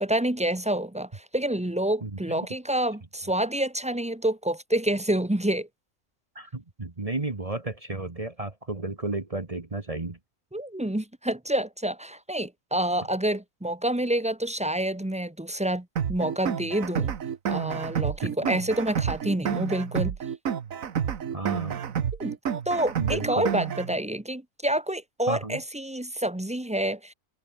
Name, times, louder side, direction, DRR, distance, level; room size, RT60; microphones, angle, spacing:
voice 1, 0.0-5.7 10.5-17.1 17.5-20.1 22.2-22.3 22.7-27.1, right 1 dB, 5° right, 0.8 m, -28 dB
voice 2, 2.0-2.5 6.3-10.2 18.4-18.5 21.3-21.8 23.0-23.5 25.3-25.6, right 2 dB, 25° right, 1.6 m, -33 dB
sound 1, 16.0-24.0, right 8 dB, 80° right, 1.6 m, -29 dB
omnidirectional pair, 1.4 m